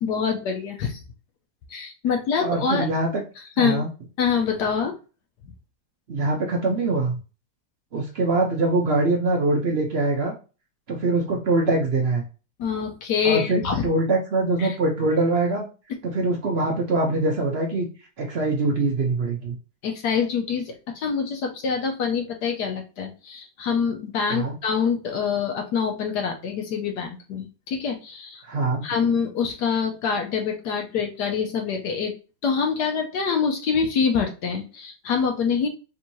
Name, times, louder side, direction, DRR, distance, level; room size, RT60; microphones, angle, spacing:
voice 1, 0.0-1.0 1.7-2.9 3.6-3.8 4.2-5.0 5.4-5.5 12.6-13.9 14.6-14.8 19.8-28.4 28.8-32.1 32.4-35.7, left 6 dB, 70° left, 3 dB, 1.1 m, -25 dB
voice 2, 2.4-3.2 3.6-3.9 6.1-7.2 7.9-10.3 10.9-12.2 13.2-15.6 16.0-17.9 18.2-19.6 24.3-24.5 28.4-28.8, right 2 dB, 90° right, 0 dB, 0.5 m, -23 dB
3.6 x 2.7 x 4.4 m, 0.34 s
omnidirectional pair, 2.0 m